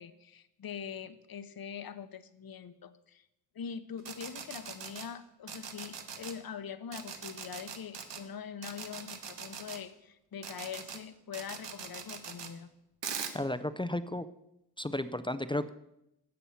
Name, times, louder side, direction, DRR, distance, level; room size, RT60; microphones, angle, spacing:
voice 1, 0.0-3.3 3.5-12.7, left 7 dB, 55° left, 12 dB, 0.8 m, -43 dB
sound 1, 4.0-5.1 5.5-6.3 6.9-8.2 8.6-9.8 10.4-11.0 11.3-12.5 13.0-13.3, right 7 dB, 90° right, 1.3 m, -41 dB
voice 2, 13.3-14.3 14.8-15.7, left 1 dB, 15° left, 12 dB, 0.3 m, -33 dB
15.5 x 7.0 x 5.6 m, 0.86 s
wide cardioid pair, 170°, 41 cm